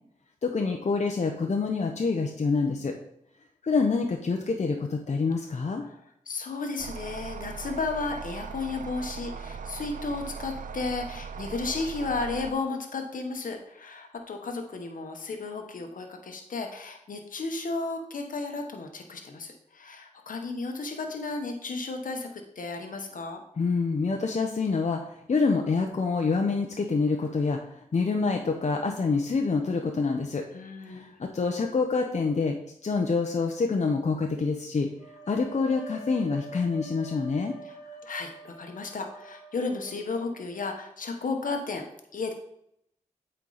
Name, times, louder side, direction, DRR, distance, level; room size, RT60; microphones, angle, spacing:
voice 1, 0.4-2.9 3.6-5.8 23.6-30.4 30.9-32.6 32.8-34.9 35.3-37.5, left 4 dB, 60° left, 2 dB, 0.8 m, -26 dB
voice 2, 6.3-23.4 30.5-31.1 37.6-41.9 42.1-42.3, left 3 dB, 80° left, 4 dB, 1.0 m, -34 dB
sound 1, 6.8-12.5, right 6 dB, 75° right, 0.4 m, -39 dB
sound 2, 35.0-40.9, right 2 dB, 25° left, 2.9 m, -45 dB
8.3 x 4.5 x 4.0 m, 0.75 s
cardioid pair, 50°, 14 cm